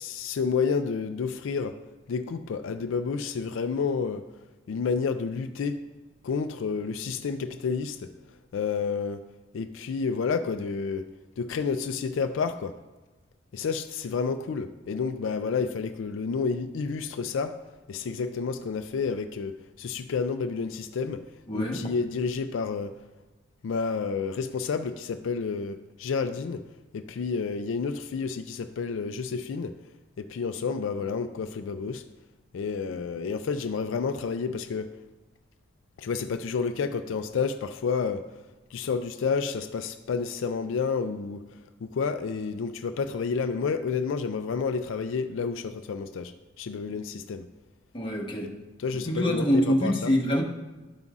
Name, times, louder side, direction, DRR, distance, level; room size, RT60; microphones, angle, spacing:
voice 1, 0.0-1.8 2.1-4.2 4.7-5.8 6.2-8.1 8.5-9.3 9.5-11.1 11.4-12.8 13.5-17.6 17.9-21.3 21.5-23.0 23.6-26.6 26.9-29.8 30.2-32.0 32.5-35.0 36.0-38.3 38.7-41.4 41.8-47.5 48.8-50.1, left 5 dB, 85° left, 0.4 m, -30 dB
voice 2, 21.5-21.9 47.9-48.5 49.0-50.4, equal, 25° left, 1.0 m, -25 dB
12.5 x 5.3 x 2.4 m
head